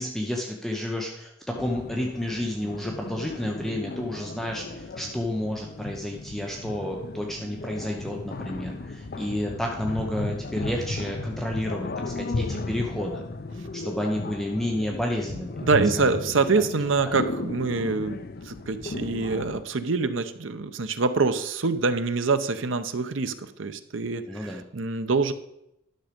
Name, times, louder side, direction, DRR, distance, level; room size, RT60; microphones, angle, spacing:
voice 1, 0.0-13.2 13.7-15.6 16.0-16.1 16.5-16.6 17.0-17.2 24.3-24.6, left 1 dB, ahead, 0 dB, 0.9 m, -31 dB
sound 1, 1.5-19.6, left 3 dB, 50° left, 0.6 m, -35 dB
voice 2, 15.6-18.2 18.4-25.3, right 4 dB, 70° right, 10 dB, 0.8 m, -25 dB
11.5 x 6.4 x 5.2 m, 0.82 s
head